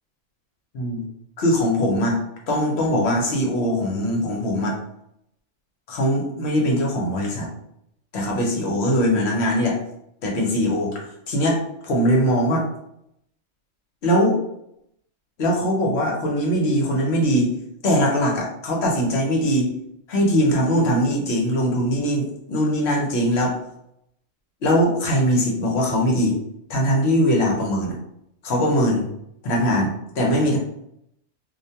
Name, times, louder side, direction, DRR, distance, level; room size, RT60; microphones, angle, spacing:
voice 1, 1.4-2.2 2.5-4.7 5.9-7.5 8.1-9.8 10.2-11.6 11.8-12.7 14.0-14.4 15.4-17.5 17.8-19.7 20.1-23.6 24.6-26.4 26.7-28.0 28.4-29.1 29.4-30.6, equal, 60° left, -1 dB, 0.9 m, -21 dB
2.4 x 2.1 x 2.7 m, 0.77 s
omnidirectional pair, 1.3 m